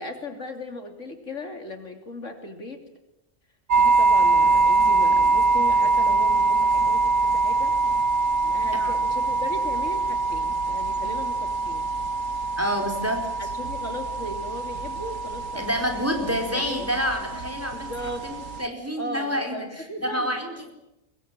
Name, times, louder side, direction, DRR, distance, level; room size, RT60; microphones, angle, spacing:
voice 1, 0.0-2.8 3.8-7.7 8.4-11.9 13.5-15.7 16.5-16.9 17.7-18.3 19.0-20.4, left 1 dB, 70° left, 5 dB, 3.4 m, -37 dB
sound 1, 3.7-18.7, right 3 dB, 75° right, 2.0 m, -23 dB
voice 2, 12.6-13.3 15.5-17.9 18.2-20.7, equal, 10° right, 4 dB, 4.7 m, -28 dB
24.5 x 22.0 x 9.0 m, 0.90 s
omnidirectional pair, 1.4 m